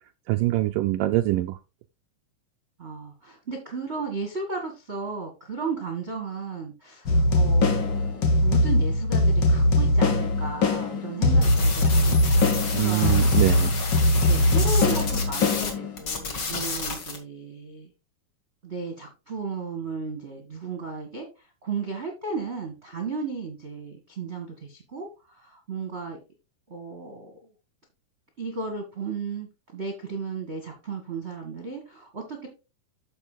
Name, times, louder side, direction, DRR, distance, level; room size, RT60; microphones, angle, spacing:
voice 1, 0.3-1.6 12.7-13.7, right 17 dB, 80° right, 7 dB, 1.9 m, -24 dB
voice 2, 2.8-12.2 12.8-13.1 14.3-17.9 18.6-21.3 21.6-26.2 26.7-27.5 28.4-32.5, right 4 dB, 30° right, 2 dB, 1.2 m, -34 dB
sound 1, 7.0-16.2, left 1 dB, 70° left, 1.0 m, -21 dB
sound 2, 11.4-15.7 16.0-17.2, left 4 dB, 40° left, 2.2 m, -31 dB
14.0 x 5.2 x 2.3 m, 0.29 s
omnidirectional pair, 4.3 m